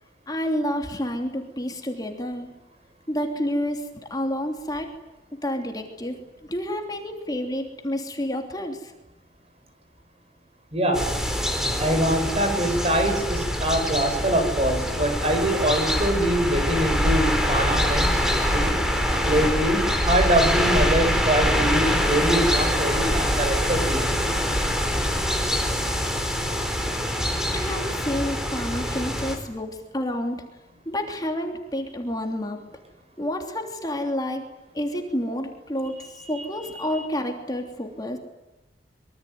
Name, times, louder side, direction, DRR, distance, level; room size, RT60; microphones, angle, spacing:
voice 1, 0.3-2.5 3.1-4.9 5.3-8.9 27.5-30.5 30.8-32.6 33.2-34.4 34.7-38.2, left 1 dB, 25° left, 3 dB, 3.0 m, -29 dB
voice 2, 10.7-11.1 11.8-18.7 19.2-24.2, right 1 dB, 35° right, 6 dB, 6.8 m, -24 dB
sound 1, 10.9-29.4, equal, 5° right, 4.5 m, -24 dB
25.5 x 24.0 x 9.5 m, 0.97 s
head